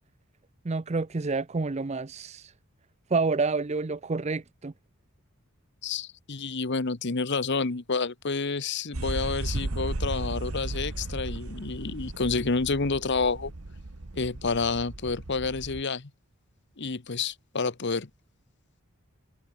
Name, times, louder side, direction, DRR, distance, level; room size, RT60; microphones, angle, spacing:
voice 1, 0.6-2.5 3.1-4.7, right 3 dB, 30° right, 0.5 m, -28 dB
voice 2, 5.8-13.5 14.1-16.1 16.8-18.1, left 4 dB, 50° left, 1.0 m, -29 dB
sound 1, 8.9-15.8, right 2 dB, 70° right, 1.3 m, -35 dB
head